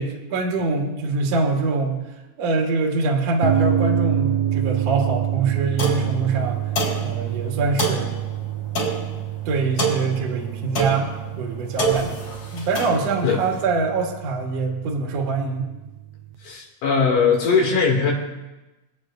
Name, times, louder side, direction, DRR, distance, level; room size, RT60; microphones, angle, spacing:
voice 1, 0.0-2.0 2.4-6.6 7.0-8.1 9.5-12.2 12.5-15.7, right 3 dB, 60° right, 1 dB, 2.4 m, -24 dB
sound 1, 3.4-16.3, right 11 dB, 80° right, 2.0 m, -28 dB
sound 2, 5.8-13.6, right 2 dB, 45° left, 4.5 m, -29 dB
voice 2, 16.4-18.1, left 5 dB, 80° left, -2 dB, 4.0 m, -19 dB
26.0 x 8.8 x 2.6 m, 1.1 s
omnidirectional pair, 3.7 m